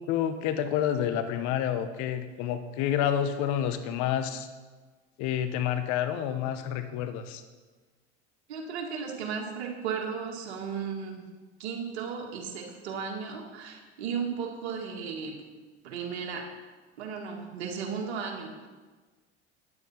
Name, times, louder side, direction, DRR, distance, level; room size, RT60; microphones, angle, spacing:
voice 1, 0.1-4.5 5.2-7.4, left 10 dB, 60° left, 10 dB, 1.0 m, -29 dB
voice 2, 8.5-11.3 11.6-15.4 15.8-16.5 17.0-18.7, right 6 dB, 75° right, 1 dB, 2.1 m, -35 dB
9.6 x 7.9 x 5.7 m, 1.3 s
hypercardioid pair, 85°, 33 cm